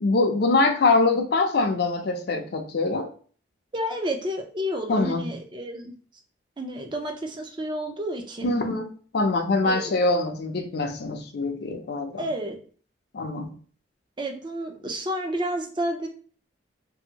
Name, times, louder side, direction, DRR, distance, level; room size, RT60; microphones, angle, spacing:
voice 1, 0.0-3.1 4.9-5.3 8.4-12.3 13.1-13.5, left 3 dB, 55° left, 5 dB, 0.4 m, -24 dB
voice 2, 3.7-5.9 6.6-8.5 9.6-10.0 12.2-12.6 14.2-16.1, equal, 25° right, 4 dB, 0.4 m, -30 dB
2.7 x 2.6 x 2.7 m, 0.43 s
head